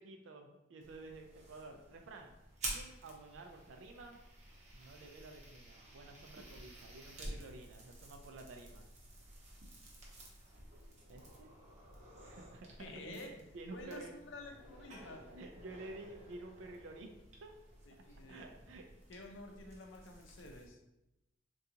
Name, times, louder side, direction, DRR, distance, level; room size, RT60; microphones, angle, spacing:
voice 1, 0.0-2.3 2.7-4.2 4.7-8.9 11.1-11.5 12.2-13.2 13.5-14.1 15.3-17.1 17.4-17.5 18.3-18.9, right 2 dB, 75° right, 4 dB, 0.3 m, -51 dB
sound 1, 0.8-20.7, right 1 dB, 35° right, 0.7 m, -51 dB
voice 2, 12.8-13.3 13.7-15.2 17.8-18.5 19.1-20.8, left 2 dB, 75° left, 2 dB, 0.5 m, -50 dB
3.7 x 2.3 x 2.7 m, 0.93 s
head